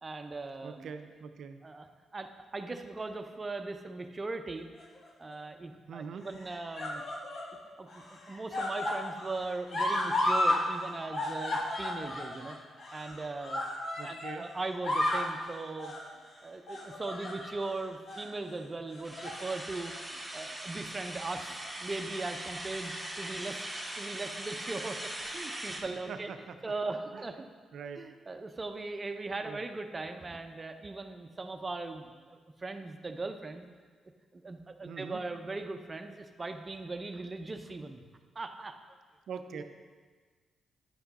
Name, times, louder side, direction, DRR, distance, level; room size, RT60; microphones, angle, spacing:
voice 1, 0.0-0.9 1.6-4.7 5.2-7.0 7.8-12.6 12.9-13.6 14.0-15.9 16.4-23.7 24.0-25.0 25.3-26.3 26.6-27.5 27.9-33.6 34.3-38.0 38.3-38.8 39.5-39.6, right 3 dB, 30° right, 6 dB, 0.7 m, -39 dB
voice 2, 0.6-1.6 5.9-6.3 14.0-14.5 26.1-26.6 27.1-27.2 27.7-28.1 29.4-29.6 34.8-35.2 39.3-39.6, right 6 dB, 75° right, 8 dB, 0.6 m, -42 dB
sound 1, 4.8-5.3 6.2-7.5 7.9-10.6 10.9-14.4 14.7-15.3 15.8-16.1 16.7-17.7 18.1-18.3 18.9-19.4 19.8-20.0 21.1-21.7 22.6-22.7, left 1 dB, 55° left, 1.3 m, -33 dB
sound 2, 19.0-25.8, right 1 dB, 10° right, 1.5 m, -40 dB
9.7 x 5.8 x 4.1 m, 1.5 s
cardioid pair, 65°, 0 cm